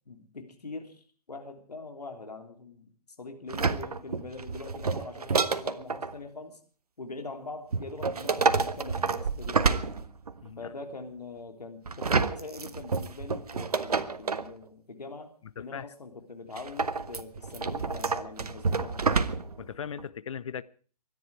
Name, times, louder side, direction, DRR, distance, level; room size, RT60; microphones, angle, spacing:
voice 1, 0.1-2.9 3.2-6.6 7.0-10.1 10.6-19.2, left 3 dB, 70° left, 3.3 m, -43 dB
sound 1, 3.5-6.1 7.7-10.5 11.9-14.5 16.6-19.6 20.0-20.1, right 4 dB, 65° right, 1.4 m, -29 dB
voice 2, 10.4-10.7 15.6-15.9 19.6-20.6, left 7 dB, 50° left, 0.9 m, -38 dB
24.0 x 10.5 x 4.8 m
figure-of-eight pair, 130°, 21 cm